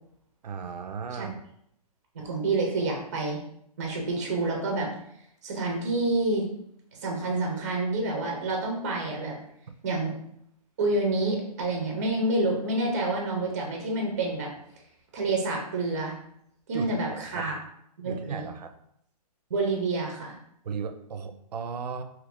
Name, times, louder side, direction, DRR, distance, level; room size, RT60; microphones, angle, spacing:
voice 1, 0.4-1.4 16.7-17.5 18.0-18.8 20.6-22.0, right 6 dB, 85° right, 7 dB, 0.5 m, -36 dB
voice 2, 2.1-3.4 3.8-4.9 5.4-6.5 7.0-9.4 9.8-10.1 10.8-14.5 15.1-16.1 16.7-17.5 18.0-18.5 19.5-20.3, right 2 dB, 25° right, 0 dB, 0.4 m, -28 dB
2.8 x 2.4 x 3.5 m, 0.72 s
hypercardioid pair, 170°, 20 cm